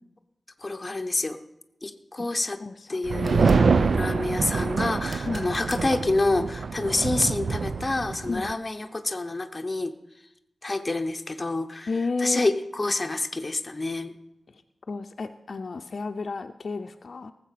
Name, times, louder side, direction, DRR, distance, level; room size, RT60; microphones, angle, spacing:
voice 1, 0.6-1.4 1.8-2.6 2.9-10.0 10.6-11.9 12.2-14.1, left 2 dB, 25° left, 6 dB, 0.9 m, -28 dB
voice 2, 2.6-3.0 5.3-5.5 8.3-8.5 11.9-12.4 14.9-17.3, left 3 dB, 55° left, 7 dB, 0.6 m, -32 dB
sound 1, 3.1-3.7 5.0-5.9 8.9-9.0, right 1 dB, 30° right, 1.4 m, -42 dB
sound 2, 3.1-8.5, right 4 dB, 65° right, 0.4 m, -25 dB
18.5 x 7.5 x 5.8 m, 0.88 s
wide cardioid pair, 115°, 0 cm